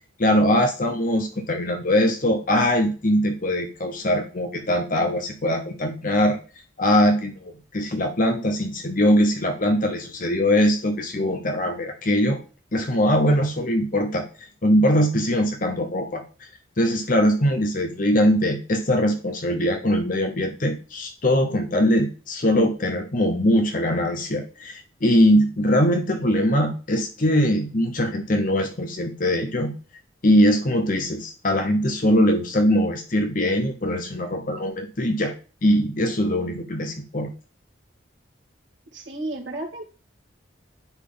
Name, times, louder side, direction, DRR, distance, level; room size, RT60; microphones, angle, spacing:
voice 1, 0.2-6.4 6.8-12.4 12.7-16.5 16.8-29.7 30.2-35.3 35.6-37.3, equal, 45° left, 5 dB, 0.8 m, -21 dB
voice 2, 38.9-39.8, right 2 dB, 70° right, 1 dB, 2.0 m, -32 dB
9.8 x 4.0 x 3.9 m, 0.35 s
head